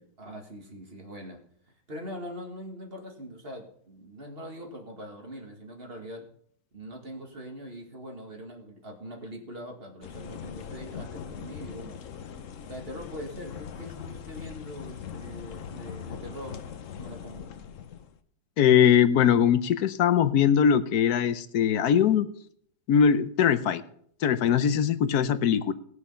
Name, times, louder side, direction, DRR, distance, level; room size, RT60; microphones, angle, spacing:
voice 1, 0.2-1.4 1.7-6.3 6.7-12.0 12.7-16.6 17.0-17.5, equal, 40° right, 3 dB, 2.2 m, -42 dB
sound 1, 10.0-18.2, left 7 dB, 60° left, 1.1 m, -41 dB
voice 2, 18.6-22.3 22.9-23.8 24.2-25.7, left 8 dB, 80° left, 13 dB, 1.2 m, -21 dB
18.5 x 6.4 x 5.6 m, 0.64 s
omnidirectional pair, 1.7 m